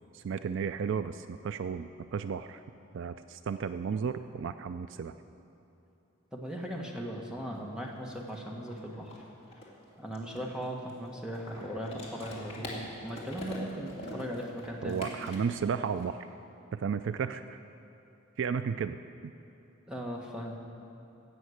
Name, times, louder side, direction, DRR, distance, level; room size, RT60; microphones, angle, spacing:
voice 1, 0.1-2.6 2.9-5.2 14.8-16.3 16.7-17.6 18.4-19.0, right 6 dB, 60° right, 11 dB, 0.3 m, -33 dB
voice 2, 6.3-9.2 10.0-15.0 19.9-20.5, equal, 5° right, -1 dB, 1.4 m, -38 dB
sound 1, 7.5-7.6 7.8-16.0, left 1 dB, 30° left, 2.5 m, -44 dB
16.5 x 6.5 x 7.8 m, 2.9 s
head